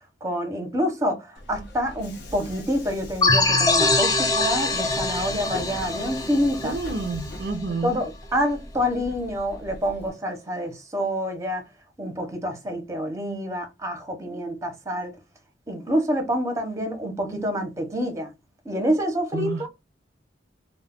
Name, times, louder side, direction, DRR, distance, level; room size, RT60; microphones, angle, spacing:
voice 1, 0.2-6.8 7.8-11.6 12.0-15.1 15.7-18.3 18.6-19.7, equal, 15° right, 0.7 m, -27 dB
Subway metro underground, 1.3-10.1, left 1 dB, 60° left, 0.7 m, -40 dB
sound 1, 3.2-7.7, left 3 dB, 20° left, 0.4 m, -23 dB
voice 2, 6.6-8.0 19.3-19.7, right 4 dB, 55° right, 0.4 m, -29 dB
2.3 x 2.0 x 3.5 m
head